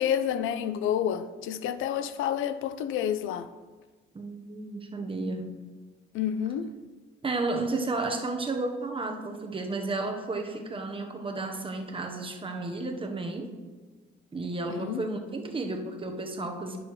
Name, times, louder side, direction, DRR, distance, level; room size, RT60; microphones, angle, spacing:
voice 1, 0.0-3.5 6.1-6.7 14.7-15.0, left 9 dB, 85° left, 0.5 m, -29 dB
voice 2, 4.1-5.7 7.2-13.5 14.3-16.8, right 2 dB, 25° right, 1.0 m, -32 dB
10.5 x 6.3 x 3.1 m
cardioid pair, 90°, 20 cm